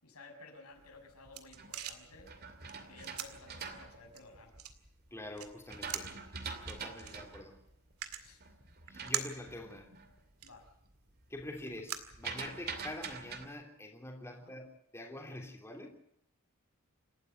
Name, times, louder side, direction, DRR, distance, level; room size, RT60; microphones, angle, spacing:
voice 1, 0.0-2.3 2.7-4.6 6.8-7.2 8.2-8.4 10.4-10.7 14.3-14.5, left 2 dB, 90° left, 3 dB, 6.2 m, -55 dB
sound 1, 0.8-12.8, right 10 dB, 85° right, 2.1 m, -46 dB
sound 2, 1.0-4.9 5.4-10.2 10.5-11.0 11.2-13.5, right 5 dB, 45° right, 2.6 m, -45 dB
voice 2, 5.1-6.2 6.7-7.6 8.9-9.9 11.3-15.9, left 1 dB, 10° left, 1 dB, 3.1 m, -45 dB
28.0 x 12.5 x 8.0 m, 0.75 s
head